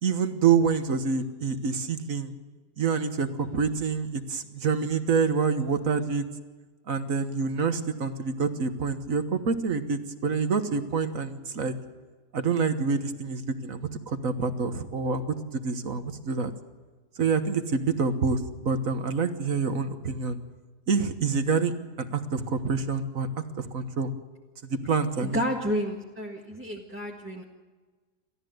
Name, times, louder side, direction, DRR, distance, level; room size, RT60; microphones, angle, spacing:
voice 1, 0.0-2.3 2.8-6.2 6.9-11.7 12.3-15.3 15.6-16.5 17.2-18.4 18.6-20.4 20.9-21.7 22.0-23.3 23.6-24.1 24.7-25.4, right 5 dB, 55° right, 9 dB, 1.6 m, -27 dB
voice 2, 25.2-27.4, equal, 5° right, -1 dB, 1.5 m, -30 dB
29.5 x 13.5 x 7.9 m, 1.3 s
omnidirectional pair, 1.8 m